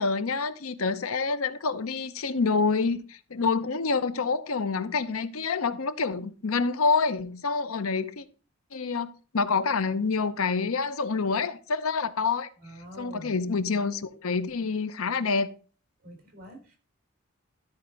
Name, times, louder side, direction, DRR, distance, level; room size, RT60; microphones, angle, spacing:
voice 1, 0.0-8.2 8.7-9.1 9.3-12.5 13.0-15.5, left 4 dB, 90° left, 0.7 m, -27 dB
voice 2, 12.6-13.3 16.0-16.8, right 1 dB, 45° right, 4.2 m, -45 dB
13.5 x 4.5 x 5.2 m
head